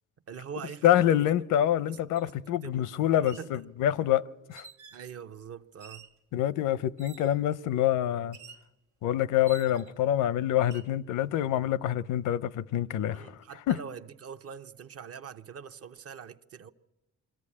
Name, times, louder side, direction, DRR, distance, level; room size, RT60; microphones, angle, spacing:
voice 1, 0.3-1.3 2.2-2.3 2.6-2.9 3.2-3.5 4.9-6.1 13.1-16.7, right 7 dB, 50° right, 0.8 m, -43 dB
voice 2, 0.8-4.6 6.3-8.4 9.0-13.3 13.7-13.8, left 11 dB, 85° left, 0.6 m, -26 dB
sound 1, 2.2-2.3 3.1-3.5 4.5-5.1 5.8-6.2 7.0-7.4 8.3-8.7 9.5-10.0 10.6-10.9, right 5 dB, 85° right, 1.1 m, -50 dB
23.0 x 14.5 x 8.6 m
cardioid pair, 90°, 30 cm